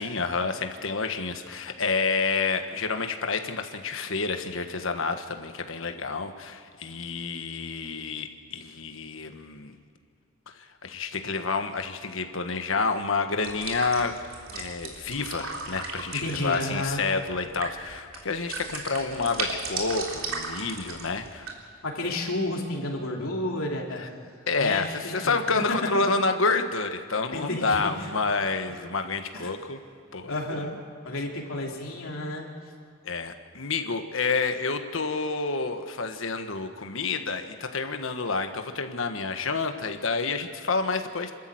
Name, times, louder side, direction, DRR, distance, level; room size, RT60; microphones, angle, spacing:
voice 1, 0.0-9.7 10.8-14.2 14.5-21.5 24.0-24.1 24.5-29.8 30.1-30.3 33.0-41.3, left 4 dB, 70° left, 6 dB, 1.4 m, -29 dB
sound 1, 13.4-21.5, right 4 dB, 80° right, 3.3 m, -36 dB
voice 2, 16.1-17.0 21.8-24.0 24.6-25.6 27.3-28.1 29.3-29.5 30.3-30.8 31.0-32.5, left 1 dB, 90° left, 0 dB, 3.1 m, -31 dB
27.5 x 13.0 x 7.9 m, 2.3 s
head